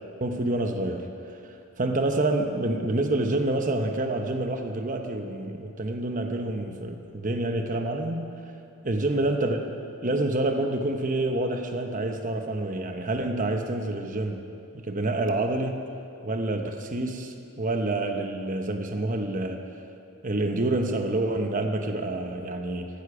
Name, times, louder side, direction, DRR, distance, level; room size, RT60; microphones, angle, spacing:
voice 1, 0.2-1.1 1.5-8.3 8.8-9.6 10.0-14.4 14.7-15.8 16.2-19.6 20.2-22.9, right 2 dB, 35° right, 5 dB, 0.9 m, -27 dB
17.0 x 15.5 x 4.9 m, 2.6 s
head